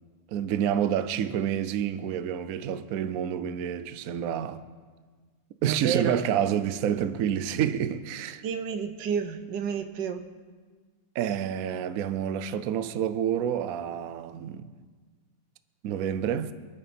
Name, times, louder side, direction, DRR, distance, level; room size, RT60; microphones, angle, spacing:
voice 1, 0.3-4.6 5.6-8.4 11.1-14.7 15.8-16.5, right 9 dB, 65° right, 0.9 m, -28 dB
voice 2, 5.6-6.2 8.4-10.2, right 7 dB, 80° right, 1.6 m, -30 dB
24.0 x 8.9 x 4.3 m
omnidirectional pair, 1.9 m